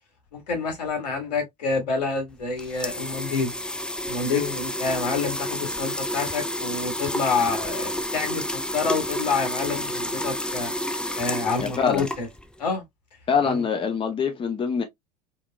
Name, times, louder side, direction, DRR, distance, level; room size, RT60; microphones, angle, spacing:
voice 1, 0.3-3.5 4.1-10.7 11.1-12.3 12.6-12.9 13.4-13.6, left 4 dB, 75° left, 1.9 m, -28 dB
sound 1, 2.3-12.6, left 1 dB, 5° left, 0.4 m, -30 dB
voice 2, 11.6-12.0 13.3-14.8, left 6 dB, 25° left, 0.9 m, -24 dB
4.4 x 3.0 x 2.3 m
hypercardioid pair, 75°, 21 cm